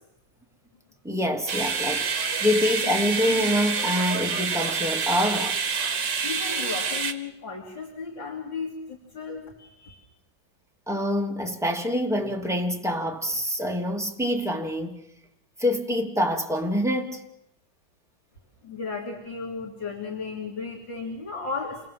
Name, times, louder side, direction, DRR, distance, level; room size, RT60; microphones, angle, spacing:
voice 1, 1.0-2.1 2.4-5.6 10.9-15.0 15.6-17.2, left 1 dB, ahead, 2.6 m, -26 dB
sound 1, 1.5-7.1, right 5 dB, 65° right, 2.4 m, -27 dB
voice 2, 6.2-10.0 18.6-21.9, left 4 dB, 70° left, 3.5 m, -35 dB
28.5 x 21.5 x 7.7 m
omnidirectional pair, 2.1 m